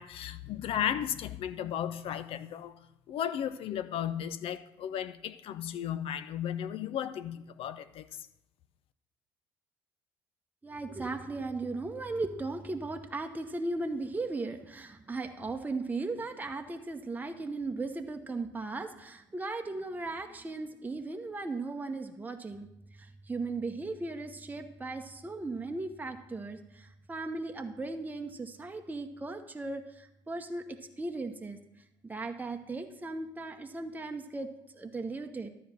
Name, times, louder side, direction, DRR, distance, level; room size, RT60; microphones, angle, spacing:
voice 1, 0.0-8.3, left 10 dB, 55° left, 0.5 m, -35 dB
voice 2, 10.6-22.7 23.3-30.6 31.0-31.6 32.0-34.5 34.8-35.5, right 3 dB, 15° right, 1.0 m, -37 dB
12.5 x 4.2 x 7.4 m
hypercardioid pair, 55°, 12 cm